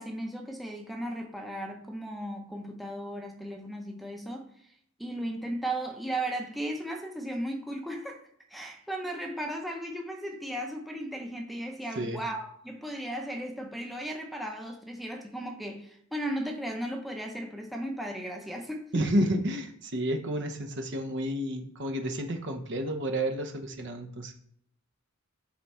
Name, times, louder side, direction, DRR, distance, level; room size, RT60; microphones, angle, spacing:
voice 1, 0.0-4.5 5.0-19.1, right 1 dB, ahead, 1 dB, 0.7 m, -36 dB
voice 2, 18.9-24.3, right 1 dB, 60° right, 5 dB, 0.9 m, -30 dB
8.5 x 3.6 x 4.3 m, 0.67 s
head